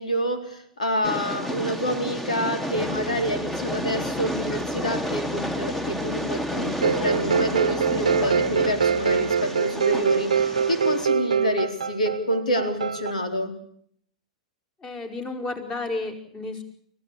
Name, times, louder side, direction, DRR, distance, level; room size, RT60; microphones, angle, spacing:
voice 1, 0.0-13.5, equal, 90° left, 7 dB, 4.1 m, -28 dB
Train, 1.0-11.0, equal, 5° left, 1.6 m, -31 dB
Musical instrument, 2.7-9.5, left 3 dB, 65° left, 5.1 m, -45 dB
sound 1, 6.8-13.1, right 6 dB, 90° right, 1.0 m, -24 dB
voice 2, 14.8-16.6, left 2 dB, 25° left, 5 dB, 5.2 m, -32 dB
24.5 x 16.5 x 8.7 m, 0.65 s
hypercardioid pair, 110°, 4 cm